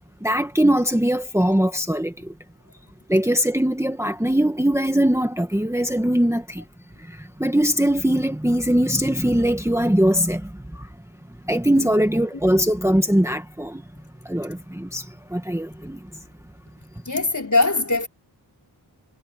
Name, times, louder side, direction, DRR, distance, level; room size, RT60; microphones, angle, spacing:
voice 1, 0.2-2.1 3.1-6.6 7.4-10.9 11.5-13.8 14.2-15.0 15.3-16.0, equal, 5° right, 1.6 m, -21 dB
voice 2, 17.0-18.1, left 3 dB, 40° left, 4.9 m, -22 dB
wide cardioid pair, 80°, 46 cm